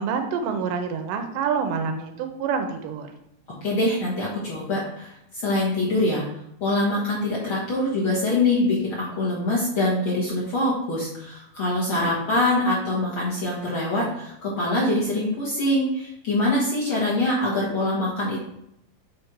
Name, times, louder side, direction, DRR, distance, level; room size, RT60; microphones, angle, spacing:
voice 1, 0.0-3.1, right 6 dB, 75° right, 6 dB, 2.2 m, -27 dB
voice 2, 3.6-6.2 6.6-18.5, left 2 dB, 55° left, -6 dB, 1.4 m, -24 dB
7.9 x 3.4 x 4.6 m, 0.78 s
omnidirectional pair, 4.2 m